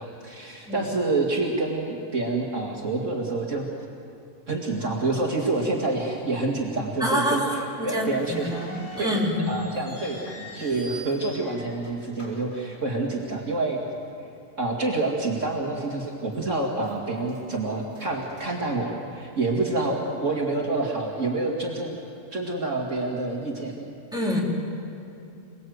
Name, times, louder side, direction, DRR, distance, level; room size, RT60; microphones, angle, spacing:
voice 1, 0.0-3.7 4.5-7.4 7.8-8.5 9.0-9.2 9.5-13.8 14.6-22.0 22.3-23.8, right 2 dB, 50° right, -1 dB, 2.6 m, -27 dB
voice 2, 7.0-9.5 24.1-24.4, equal, ahead, -4 dB, 4.1 m, -27 dB
sound 1, 8.0-13.3 13.6-13.7 14.5-14.7 15.1-15.2 15.8-16.4 16.8-19.3, equal, 80° left, 4.9 m, -44 dB
28.0 x 19.5 x 8.0 m, 2.8 s
omnidirectional pair, 1.6 m